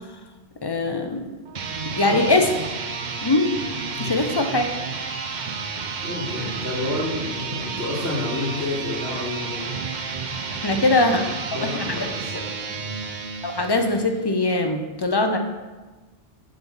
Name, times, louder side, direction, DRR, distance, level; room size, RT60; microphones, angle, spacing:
voice 1, 0.6-1.2 1.9-2.5 3.2-3.5 4.0-4.7 10.5-11.2 11.7-12.0 13.4-15.4, left 2 dB, 25° left, 4 dB, 0.6 m, -21 dB
sound 1, 1.4-14.2, right 5 dB, 45° right, 0.7 m, -31 dB
voice 2, 3.9-4.2 6.0-9.7 10.6-10.8 11.2-12.4 12.7-13.1, left 2 dB, 65° right, -7 dB, 3.1 m, -30 dB
9.0 x 4.0 x 7.1 m, 1.2 s
omnidirectional pair, 1.2 m